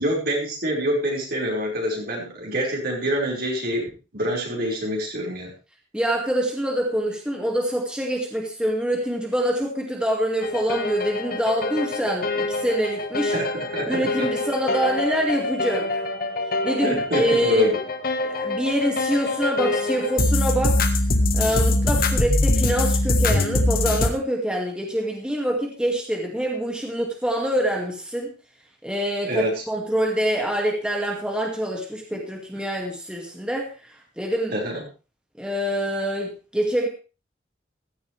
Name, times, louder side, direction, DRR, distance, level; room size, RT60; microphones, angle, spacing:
voice 1, 0.0-5.5 13.3-14.3 16.8-17.7 29.2-29.6 34.5-34.8, equal, 60° right, -1 dB, 5.2 m, -26 dB
voice 2, 5.9-13.4 13.9-15.9 16.6-17.7 18.2-20.9 21.3-28.3 28.8-34.6 35.4-36.9, equal, 5° right, 0 dB, 2.2 m, -25 dB
sound 1, 10.4-24.1, left 2 dB, 55° left, 1.5 m, -24 dB
15.5 x 13.0 x 3.4 m, 0.33 s
head